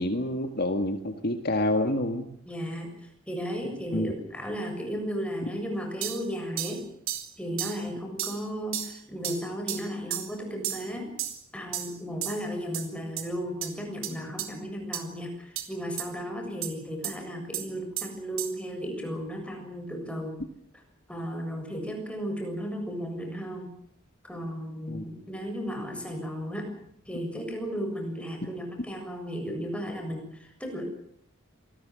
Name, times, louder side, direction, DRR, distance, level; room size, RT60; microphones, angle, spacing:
voice 1, 0.0-2.3 3.9-4.1 24.9-25.0, left 1 dB, 50° left, 6 dB, 1.9 m, -28 dB
voice 2, 2.5-6.8 7.4-11.1 11.5-20.4 21.1-23.7 24.2-26.7 27.1-30.8, equal, 5° left, 3 dB, 7.1 m, -35 dB
sound 1, 6.0-6.2 6.6-6.8 7.1-7.3 7.6-7.8 8.2-8.4 8.7-8.9 9.2-9.4 9.7-9.8 10.1-10.3 10.6-10.8 11.2-11.4 11.7-11.9 12.2-12.4 12.7-12.9 13.2-13.3 13.6-13.7 14.0-14.1 14.4-14.5 14.9-15.0 15.6-15.7 16.0-16.1 16.6-16.7 17.0-17.1 17.5-17.7 18.0-18.1 18.4-18.5, right 11 dB, 80° right, 3.8 m, -32 dB
26.5 x 20.0 x 7.7 m, 0.69 s
head